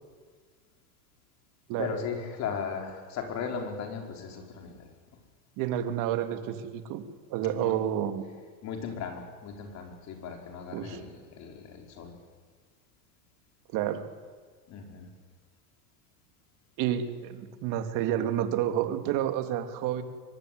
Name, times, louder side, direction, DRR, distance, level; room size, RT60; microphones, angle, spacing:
voice 1, 1.8-4.9 7.6-7.7 8.6-12.1 14.7-15.1, left 6 dB, 40° left, 3 dB, 5.3 m, -37 dB
voice 2, 5.6-8.2 10.7-11.0 13.7-14.1 16.8-20.0, right 11 dB, 45° right, 7 dB, 2.8 m, -30 dB
24.0 x 22.0 x 9.6 m, 1.5 s
supercardioid pair, 140°, 43 cm